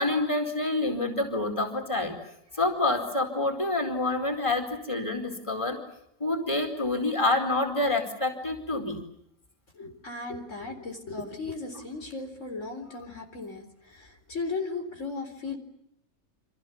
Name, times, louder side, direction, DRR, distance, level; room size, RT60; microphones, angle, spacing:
voice 1, 0.0-2.2 2.5-5.8 6.2-9.0, left 2 dB, 20° left, 4 dB, 4.6 m, -27 dB
voice 2, 9.7-15.6, left 3 dB, 60° left, 4 dB, 4.5 m, -36 dB
29.0 x 27.5 x 7.2 m, 0.74 s
omnidirectional pair, 1.4 m